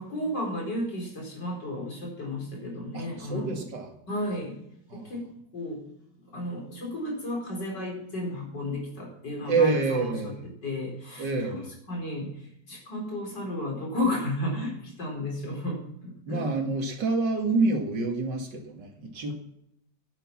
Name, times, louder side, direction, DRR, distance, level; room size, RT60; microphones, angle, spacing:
voice 1, 0.0-3.6 4.1-4.6 4.9-5.3 5.5-5.8 6.3-10.3 10.6-11.6 11.9-16.5, left 1 dB, 75° left, -1 dB, 5.1 m, -33 dB
voice 2, 2.9-3.9 4.9-5.1 9.5-10.5 11.2-11.7 16.3-19.3, right 3 dB, 75° right, 3 dB, 2.7 m, -27 dB
10.5 x 10.0 x 7.3 m, 0.75 s
omnidirectional pair, 1.9 m